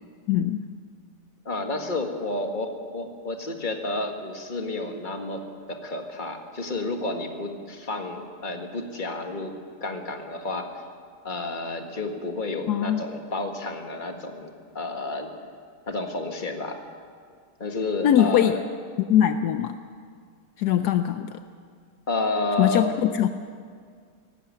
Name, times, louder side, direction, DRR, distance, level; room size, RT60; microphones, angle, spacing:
voice 1, 0.3-0.6 12.7-13.0 18.0-18.6 19.1-19.8 20.6-21.4 22.6-23.3, left 10 dB, 75° left, 9 dB, 1.2 m, -21 dB
voice 2, 1.5-9.5 9.8-10.7 11.2-15.4 15.9-16.8 17.6-18.6 22.1-22.9, left 2 dB, 30° left, 4 dB, 1.8 m, -31 dB
18.0 x 15.5 x 9.7 m, 2.1 s
omnidirectional pair, 1.8 m